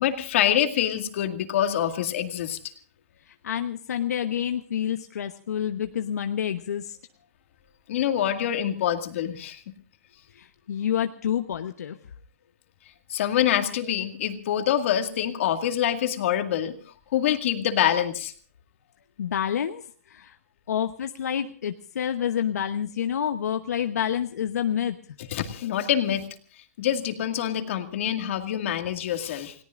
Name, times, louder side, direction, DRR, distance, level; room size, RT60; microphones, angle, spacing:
voice 1, 0.0-2.6 7.9-9.6 13.1-16.8 17.1-18.3 25.3-26.3 26.8-29.5, left 10 dB, 50° left, 6 dB, 2.1 m, -25 dB
voice 2, 3.3-7.0 10.3-12.0 19.2-20.3 20.7-25.0, left 9 dB, 75° left, 7 dB, 1.0 m, -28 dB
29.5 x 18.0 x 2.5 m, 0.43 s
hypercardioid pair, 160°, 9 cm